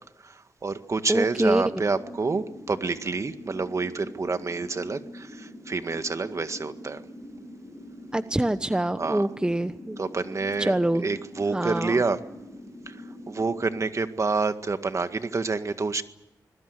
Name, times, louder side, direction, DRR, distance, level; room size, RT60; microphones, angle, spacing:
voice 1, 0.2-7.0 9.0-9.2 10.0-10.7 11.0-12.2 12.9-16.0, right 4 dB, 45° right, 9 dB, 1.9 m, -28 dB
voice 2, 1.1-1.9 8.1-10.0 10.6-11.0 11.5-12.0, right 1 dB, 10° right, 11 dB, 1.0 m, -25 dB
sound 1, 1.4-13.8, left 1 dB, 10° left, 4.3 m, -44 dB
26.0 x 21.5 x 8.1 m, 0.91 s
cardioid pair, 65°, 7 cm